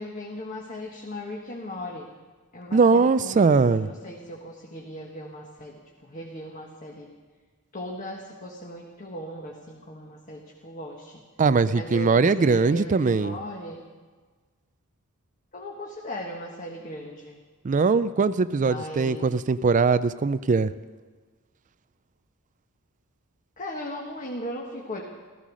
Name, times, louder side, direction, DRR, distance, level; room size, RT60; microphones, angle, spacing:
voice 1, 0.0-2.1 2.5-7.1 7.7-11.2 11.7-13.8 15.5-17.4 18.6-19.3 23.6-25.0, left 1 dB, 35° left, -1 dB, 1.5 m, -38 dB
voice 2, 2.7-3.9 11.4-13.4 17.6-20.7, right 4 dB, 35° right, 14 dB, 0.4 m, -21 dB
15.5 x 15.0 x 6.3 m, 1.4 s
head